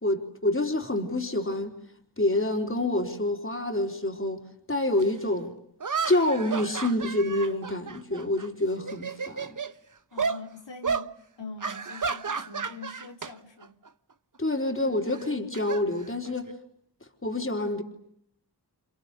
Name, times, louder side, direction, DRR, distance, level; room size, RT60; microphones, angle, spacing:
voice 1, 0.0-1.8 2.2-5.5 6.0-9.6 14.4-16.5 17.2-17.8, left 1 dB, 30° left, 3.9 m, -27 dB
sound 1, 5.0-5.1 5.8-8.5 8.8-9.7 10.2-10.4 10.8-11.1 11.6-13.3 13.6-13.9 15.1-16.5, right 5 dB, 45° right, 1.1 m, -32 dB
voice 2, 10.1-13.8, left 3 dB, 90° left, 4.2 m, -44 dB
30.0 x 29.0 x 6.7 m
wide cardioid pair, 50°, 43 cm